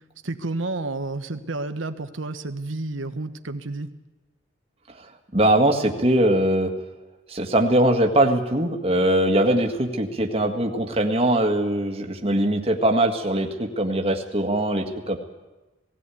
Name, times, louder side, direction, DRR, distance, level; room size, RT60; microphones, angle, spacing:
voice 1, 0.2-3.9, right 2 dB, 85° right, 9 dB, 1.3 m, -30 dB
voice 2, 5.0-6.7 7.3-15.2, right 1 dB, 30° right, 4 dB, 1.9 m, -21 dB
18.5 x 16.5 x 8.5 m, 1.1 s
head